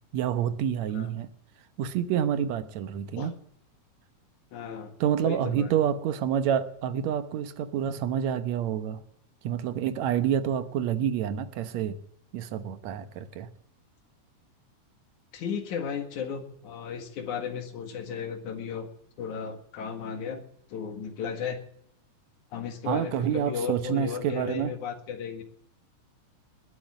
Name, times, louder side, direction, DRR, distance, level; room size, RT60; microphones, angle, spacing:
voice 1, 0.1-1.3 1.8-3.3 5.0-9.0 9.4-12.0 12.3-13.5 22.9-24.7, right 9 dB, 70° right, 11 dB, 2.2 m, -28 dB
voice 2, 4.5-5.7 15.3-18.9 19.2-20.4 20.7-21.6 22.5-25.4, left 7 dB, 80° left, 6 dB, 3.3 m, -35 dB
20.5 x 8.0 x 8.2 m, 0.75 s
omnidirectional pair, 3.4 m